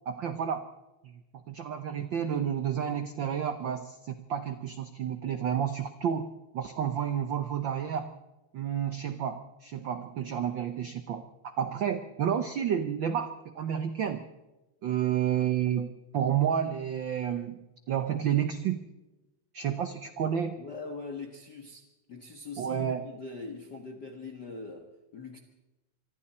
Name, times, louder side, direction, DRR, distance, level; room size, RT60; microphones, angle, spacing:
voice 1, 0.1-0.7 1.0-1.1 1.5-8.1 8.5-14.3 14.8-18.8 19.5-20.6 22.6-23.1, right 9 dB, 90° right, 9 dB, 1.0 m, -30 dB
voice 2, 20.6-25.4, left 3 dB, 45° left, 3 dB, 1.7 m, -42 dB
26.0 x 24.0 x 4.3 m, 1.0 s
omnidirectional pair, 3.4 m